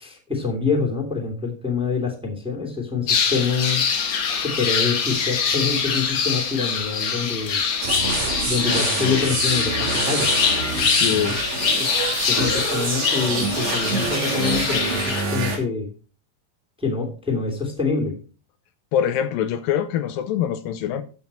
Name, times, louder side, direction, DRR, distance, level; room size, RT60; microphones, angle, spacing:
voice 1, 0.0-3.8 4.4-7.6 8.4-10.3 10.8-11.3 11.8-11.9 12.3-15.9 16.8-18.2, left 5 dB, ahead, 2.3 m, -26 dB
sound 1, 3.1-15.2, left 6 dB, 50° left, 1.5 m, -24 dB
sound 2, 7.8-15.6, right 3 dB, 90° right, 5.0 m, -26 dB
voice 2, 10.9-11.4 18.9-21.0, left 9 dB, 75° left, 2.5 m, -24 dB
14.5 x 6.3 x 4.3 m
omnidirectional pair, 4.2 m